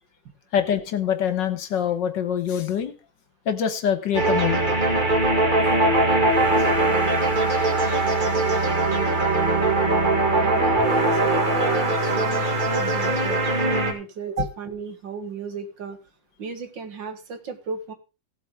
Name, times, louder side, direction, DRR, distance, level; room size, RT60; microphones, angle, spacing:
voice 1, 0.5-2.9 3.4-4.6 5.2-5.3 6.6-6.7, left 8 dB, 65° left, 10 dB, 1.7 m, -25 dB
sound 1, 4.1-13.9, right 2 dB, 25° right, 1.9 m, -21 dB
voice 2, 10.4-13.4 13.7-16.0 16.4-17.9, right 5 dB, 65° right, 8 dB, 2.2 m, -34 dB
17.0 x 8.2 x 3.6 m, 0.30 s
omnidirectional pair, 2.2 m